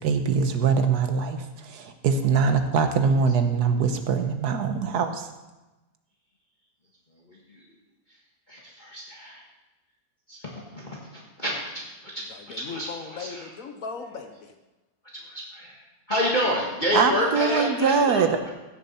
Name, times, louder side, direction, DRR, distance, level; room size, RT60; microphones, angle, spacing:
voice 1, 0.0-1.4 1.7-5.3 16.9-18.3, right 5 dB, 70° right, 7 dB, 1.4 m, -22 dB
voice 2, 7.3-7.6 8.5-9.4 10.3-13.5 15.2-18.5, left 1 dB, 30° left, -4 dB, 1.6 m, -30 dB
voice 3, 12.3-14.5, left 5 dB, 60° left, 6 dB, 1.2 m, -38 dB
15.5 x 6.9 x 4.2 m, 1.1 s
omnidirectional pair, 1.8 m